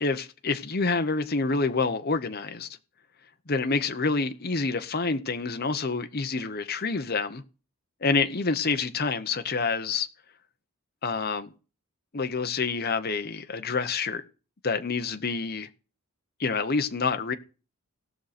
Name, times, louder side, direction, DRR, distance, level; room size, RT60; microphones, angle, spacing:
voice 1, 0.0-2.7 3.5-7.4 8.0-10.1 11.0-11.5 12.1-14.2 14.6-15.7 16.4-17.4, left 4 dB, 45° left, 0.9 m, -27 dB
18.0 x 6.5 x 4.2 m
head